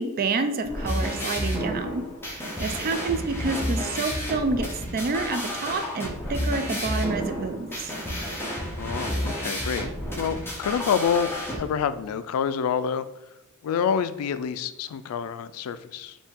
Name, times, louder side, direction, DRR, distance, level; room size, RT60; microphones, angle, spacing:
voice 1, 0.0-2.0 2.6-4.7 4.9-7.9, right 3 dB, 45° right, 8 dB, 0.4 m, -28 dB
sound 1, 0.6-11.6, equal, 10° left, 0.8 m, -31 dB
voice 2, 8.8-9.9 10.2-13.1 13.6-16.2, left 7 dB, 85° left, 15 dB, 0.3 m, -27 dB
3.5 x 2.7 x 4.4 m, 1.0 s
head